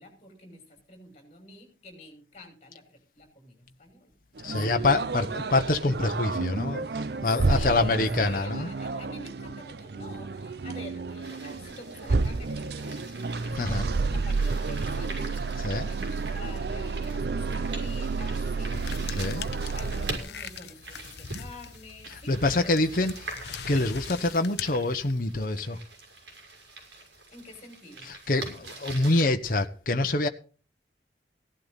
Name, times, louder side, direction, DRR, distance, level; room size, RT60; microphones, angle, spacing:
voice 1, 0.0-4.1 4.6-4.8 7.4-13.1 13.5-15.1 15.9-18.8 19.7-23.0 27.3-28.1, left 1 dB, 35° left, 6.0 m, -47 dB
voice 2, 4.4-8.7 13.5-13.9 15.6-15.9 19.1-19.5 22.1-23.3 23.7-25.8 28.0-30.3, left 2 dB, 50° left, 1.1 m, -26 dB
sound 1, 4.4-20.2, right 4 dB, 65° right, 0.6 m, -31 dB
sound 2, 11.2-29.2, right 2 dB, 80° right, 6.5 m, -44 dB
sound 3, 18.7-25.4, left 6 dB, 70° left, 0.8 m, -41 dB
16.5 x 11.5 x 4.1 m
head